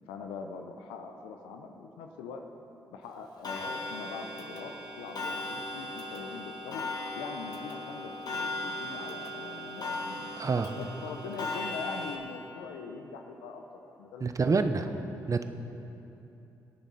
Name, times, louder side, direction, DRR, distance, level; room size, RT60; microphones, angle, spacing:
voice 1, 0.1-2.4 2.9-6.8 7.1-10.3 10.8-13.6 14.0-14.7, left 5 dB, 85° left, 4 dB, 0.7 m, -42 dB
Clock, 3.4-12.2, left 2 dB, 50° left, 1.9 m, -37 dB
voice 2, 10.4-10.7 14.2-14.9 15.3-15.4, right 4 dB, 40° right, 9 dB, 0.9 m, -27 dB
23.0 x 8.6 x 4.2 m, 2.9 s
hypercardioid pair, 45°, 8 cm